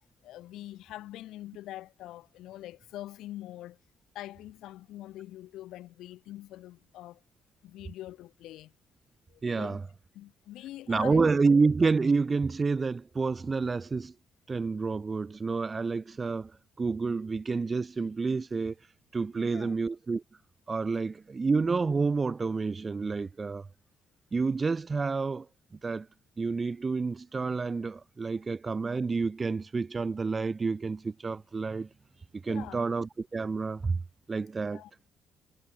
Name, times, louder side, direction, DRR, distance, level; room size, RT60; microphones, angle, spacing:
voice 1, 0.2-3.8 4.1-7.2 7.6-8.7 9.3-9.8 10.1-11.3 19.3-19.7 32.5-32.8 34.7-34.9, left 14 dB, 85° left, 1.5 m, -44 dB
voice 2, 9.4-9.8 10.9-14.1 14.5-16.5 16.8-18.7 19.1-20.2 20.7-23.7 24.3-25.5 25.8-26.1 26.4-31.9 32.3-34.0 34.3-34.8, right 4 dB, 30° right, 0.5 m, -29 dB
cardioid pair, 90°, 0 cm